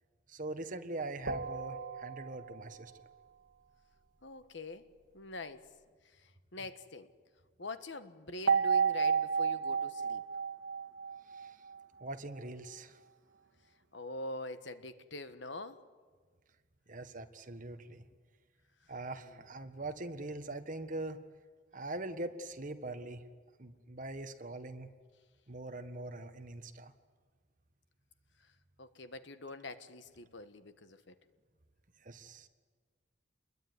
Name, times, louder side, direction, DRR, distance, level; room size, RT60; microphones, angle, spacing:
voice 1, 0.3-2.9 11.3-11.6 12.0-13.0 16.9-18.0 18.9-21.2 21.7-23.2 23.6-24.9 25.5-26.9 32.0-32.5, right 2 dB, 40° right, 8 dB, 1.6 m, -42 dB
sound 1, 1.3-2.8 8.5-11.8, right 6 dB, 75° right, 1.9 m, -32 dB
voice 2, 4.2-4.8 5.1-5.6 6.2-7.1 7.6-10.2 13.9-15.8 28.8-31.1, left 2 dB, 65° left, 11 dB, 1.4 m, -44 dB
27.5 x 22.0 x 9.7 m, 1.5 s
head